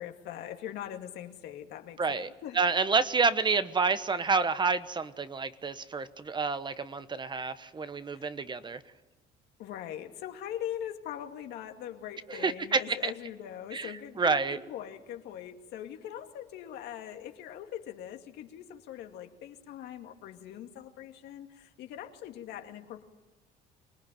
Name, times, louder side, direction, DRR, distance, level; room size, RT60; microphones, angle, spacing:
voice 1, 0.0-2.6 8.1-8.3 9.6-23.0, left 10 dB, 80° left, 5 dB, 2.3 m, -42 dB
voice 2, 2.0-2.3 2.5-8.8 12.3-13.1 13.7-13.9 14.2-14.6, right 4 dB, 25° right, 13 dB, 1.2 m, -29 dB
25.0 x 19.5 x 9.2 m, 1.2 s
cardioid pair, 110°, 17 cm